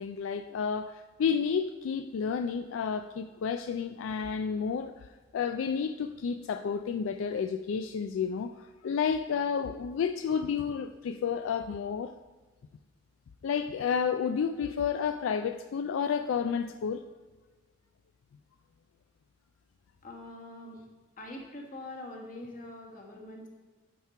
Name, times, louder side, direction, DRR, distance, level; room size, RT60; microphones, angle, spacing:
voice 1, 0.0-12.1 13.4-17.0, left 6 dB, 75° left, 7 dB, 0.3 m, -31 dB
voice 2, 20.0-20.8 21.2-23.5, left 1 dB, 45° left, -1 dB, 1.5 m, -44 dB
9.2 x 4.5 x 5.7 m, 1.3 s
head